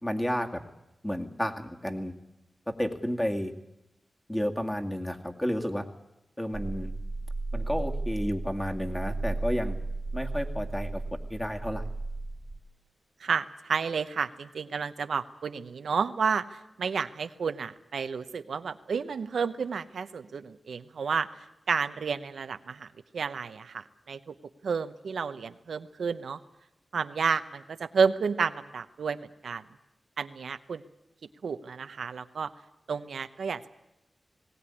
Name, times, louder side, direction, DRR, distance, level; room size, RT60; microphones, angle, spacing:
voice 1, 0.0-0.6 1.0-2.1 2.7-3.5 4.3-5.8 6.4-6.9 7.5-9.8 10.1-11.0 11.3-11.8, equal, 10° left, 4 dB, 2.2 m, -31 dB
sound 1, 6.5-12.6, right 2 dB, 55° right, 1.5 m, -34 dB
voice 2, 13.2-22.9 23.1-24.3 24.6-26.4 26.9-29.6 30.2-30.8 31.4-32.5 32.9-33.7, right 5 dB, 90° right, 10 dB, 0.8 m, -31 dB
19.5 x 17.0 x 9.9 m, 0.91 s
cardioid pair, 65°, 0 cm